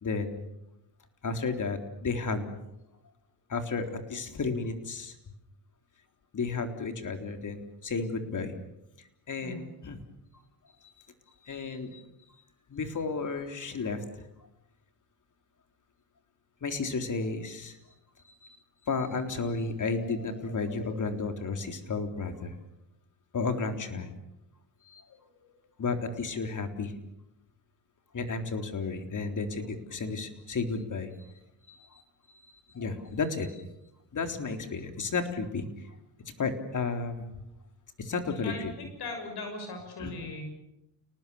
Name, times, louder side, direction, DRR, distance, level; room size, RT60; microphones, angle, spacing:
voice 1, 0.0-0.4 1.2-2.5 3.5-5.1 6.3-8.6 9.3-10.0 11.5-12.0 12.7-14.2 16.6-17.8 18.2-18.6 18.8-22.5 23.3-24.1 24.9-25.0 25.8-26.9 28.1-31.3 31.7-32.0 32.3-33.6 34.1-35.7 36.4-37.3 38.0-38.7 40.0-40.1, left 4 dB, 45° left, 6 dB, 3.9 m, -33 dB
voice 2, 38.2-40.4, left 3 dB, 60° left, 4 dB, 6.6 m, -39 dB
30.0 x 19.5 x 7.2 m, 0.85 s
cardioid pair, 80°, 43 cm